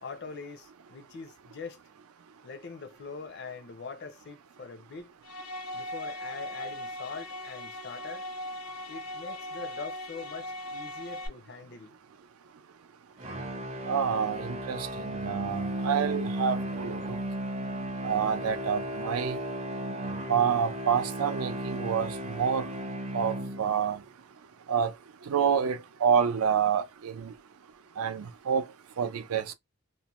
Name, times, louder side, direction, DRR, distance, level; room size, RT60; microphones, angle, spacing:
voice 1, 0.0-1.8 2.4-5.1 5.7-8.3 8.9-12.0, left 4 dB, 50° left, 0.5 m, -43 dB
sound 1, 5.2-11.3, left 1 dB, 85° left, 0.9 m, -39 dB
sound 2, 13.2-24.0, right 1 dB, 30° right, 0.5 m, -35 dB
voice 2, 13.9-17.0 18.0-19.4 20.3-22.7 23.1-24.0 24.7-24.9 25.3-27.3 28.0-28.6 29.0-29.4, right 7 dB, 80° right, 0.4 m, -28 dB
2.6 x 2.1 x 2.9 m
head